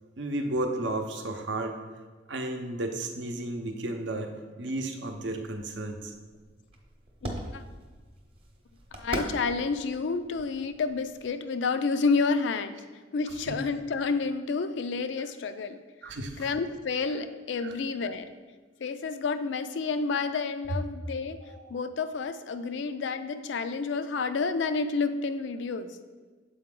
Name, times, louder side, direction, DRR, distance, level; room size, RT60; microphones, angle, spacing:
voice 1, 0.0-1.8 2.3-6.1 13.5-13.6 16.0-16.5 17.6-17.7 21.5-21.8, right 1 dB, 65° right, 4 dB, 0.7 m, -33 dB
sound 1, 5.1-11.4, right 1 dB, 30° right, 0.8 m, -41 dB
voice 2, 7.2-7.6 8.9-12.8 13.1-15.8 16.4-18.4 18.8-21.4 21.7-26.0, left 4 dB, 65° left, 10 dB, 0.4 m, -30 dB
7.0 x 4.8 x 3.7 m, 1.4 s
head